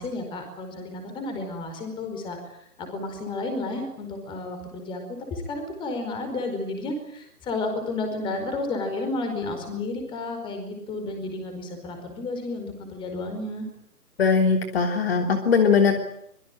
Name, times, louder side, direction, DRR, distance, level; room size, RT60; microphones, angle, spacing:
voice 1, 0.0-5.0 5.3-13.7, left 2 dB, 10° left, 6 dB, 4.8 m, -32 dB
voice 2, 14.2-16.0, left 5 dB, 40° left, 5 dB, 3.3 m, -20 dB
25.0 x 23.0 x 9.1 m, 0.73 s
figure-of-eight pair, 155°, 46 cm